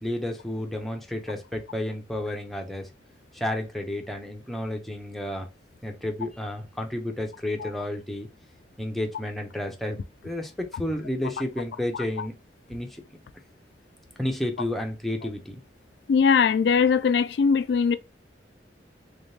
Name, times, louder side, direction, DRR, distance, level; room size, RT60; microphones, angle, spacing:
voice 1, 0.0-2.9 3.3-5.5 5.8-8.3 8.8-10.0 10.2-12.3 12.7-13.0 14.2-15.6, left 1 dB, ahead, 0.7 m, -31 dB
voice 2, 16.1-18.0, left 6 dB, 75° left, 0.3 m, -20 dB
3.5 x 3.5 x 2.8 m
head